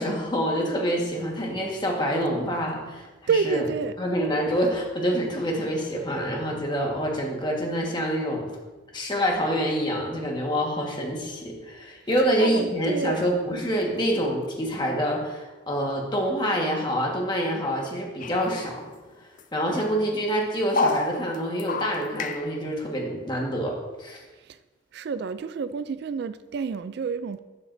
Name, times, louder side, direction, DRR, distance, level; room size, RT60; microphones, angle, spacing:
voice 1, 0.0-3.1 3.4-3.6 4.0-8.5 8.9-18.8 19.5-24.2, equal, 25° left, -1 dB, 1.5 m, -26 dB
voice 2, 3.3-4.0 12.4-13.3 24.9-27.4, right 5 dB, 55° right, 13 dB, 0.3 m, -28 dB
Drips In Mine, 18.2-19.1 19.4-19.5 19.7-20.2 20.7-22.5, left 4 dB, 40° left, 0.4 m, -30 dB
12.0 x 7.9 x 2.6 m, 1.2 s
head